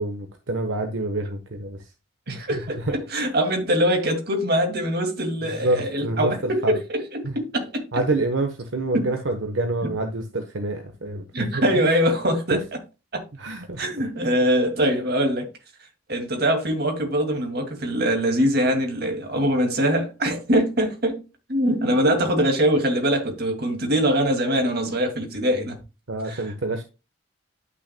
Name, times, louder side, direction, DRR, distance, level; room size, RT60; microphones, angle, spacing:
voice 1, 0.0-1.9 2.3-2.9 5.6-6.8 7.2-7.3 7.9-11.7 12.5-12.6 13.3-13.9 26.1-26.8, right 2 dB, 75° right, 1.0 m, -27 dB
voice 2, 2.3-7.8 8.9-9.0 11.3-12.6 13.1-13.2 13.8-15.5 16.1-21.2 21.5-25.8 26.3-26.4, equal, 50° right, 2.2 m, -23 dB
11.0 x 6.1 x 2.2 m
head